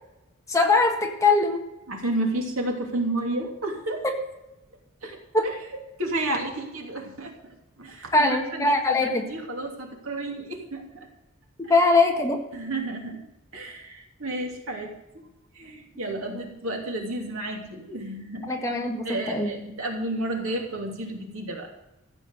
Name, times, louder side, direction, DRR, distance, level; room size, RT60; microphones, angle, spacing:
voice 1, 0.5-1.6 5.3-5.4 8.1-9.3 11.7-12.4 18.5-19.5, left 3 dB, 15° left, 2 dB, 1.6 m, -21 dB
voice 2, 1.9-4.0 5.0-5.2 6.0-11.1 11.6-11.7 12.5-13.2 13.5-14.9 15.5-18.5 19.0-21.7, right 1 dB, 75° right, 1 dB, 2.8 m, -31 dB
14.5 x 8.0 x 6.6 m, 0.94 s
head